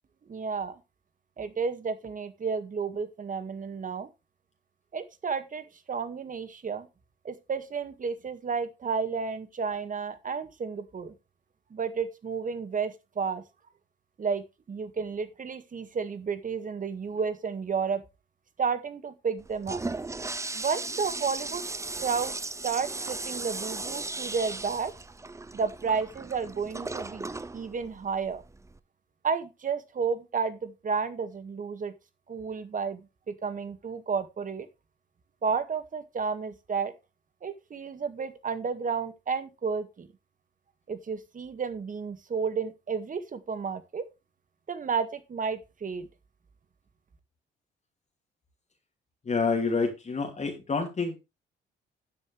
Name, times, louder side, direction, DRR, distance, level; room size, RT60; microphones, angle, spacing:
voice 1, 0.3-0.8 1.4-4.1 4.9-6.9 7.2-11.1 11.7-13.4 14.2-18.0 18.6-19.8 20.5-21.6 22.0-22.4 22.6-24.9 25.5-27.3 27.5-28.4 29.2-31.9 32.3-34.7 35.4-36.9 37.4-40.1 40.9-44.1 44.7-46.1, right 5 dB, 40° right, 10 dB, 1.9 m, -32 dB
Toilet flush, 19.4-28.8, right 3 dB, 15° right, 0.7 m, -37 dB
voice 2, 49.2-51.2, left 4 dB, 35° left, 2 dB, 2.7 m, -28 dB
12.5 x 8.2 x 3.3 m, 0.26 s
cardioid pair, 90°, 20 cm